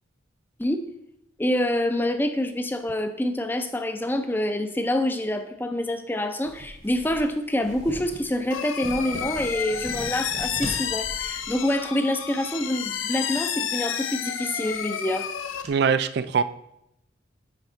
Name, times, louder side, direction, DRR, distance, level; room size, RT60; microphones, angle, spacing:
voice 1, 1.4-15.3, left 1 dB, 10° left, 8 dB, 0.4 m, -26 dB
sound 1, 6.4-12.2 12.6-13.0 13.3-13.4 14.1-15.7, right 1 dB, 35° right, 0.9 m, -40 dB
sound 2, 8.5-15.6, left 8 dB, 85° left, 0.5 m, -31 dB
voice 2, 15.7-16.4, right 6 dB, 55° right, 13 dB, 0.4 m, -22 dB
9.8 x 3.5 x 4.4 m, 0.80 s
head